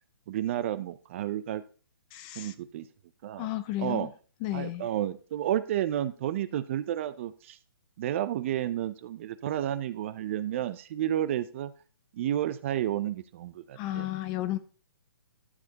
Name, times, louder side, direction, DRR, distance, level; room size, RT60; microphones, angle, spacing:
voice 1, 0.3-1.6 2.4-2.9 3.2-3.5 3.8-4.1 4.5-7.6 8.0-11.7 12.1-14.1, right 11 dB, 35° right, 0.5 m, -31 dB
voice 2, 2.1-2.5 3.4-4.1 4.4-4.9 13.7-14.6, left 14 dB, 25° left, 0.6 m, -33 dB
12.0 x 7.7 x 2.9 m
hypercardioid pair, 155°, 12 cm